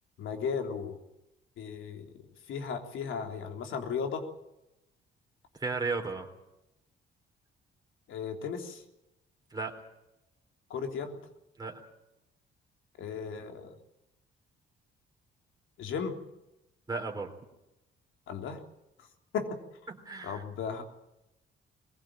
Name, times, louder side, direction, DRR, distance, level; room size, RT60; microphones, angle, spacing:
voice 1, 0.2-1.0 1.6-2.1 2.5-4.2 8.1-8.8 10.7-11.1 13.0-13.7 15.8-16.2 18.3-18.6 19.3-19.6 20.2-20.8, left 6 dB, 80° left, 4 dB, 3.4 m, -35 dB
voice 2, 5.6-6.3 9.5-9.7 11.6-11.7 16.9-17.3 19.9-20.4, right 4 dB, 20° right, 2 dB, 3.8 m, -34 dB
21.5 x 16.5 x 8.9 m, 0.90 s
cardioid pair, 90°, 20 cm